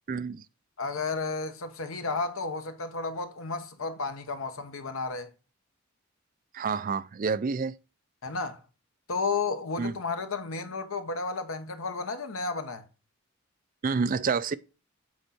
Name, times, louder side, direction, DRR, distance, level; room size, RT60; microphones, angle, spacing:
voice 1, 0.1-0.4 6.5-7.7 9.8-9.9 13.8-14.6, right 5 dB, 40° right, 0.4 m, -28 dB
voice 2, 0.8-5.3 8.2-8.6 9.1-12.8, left 4 dB, 85° left, 1.0 m, -32 dB
8.0 x 4.5 x 4.2 m
head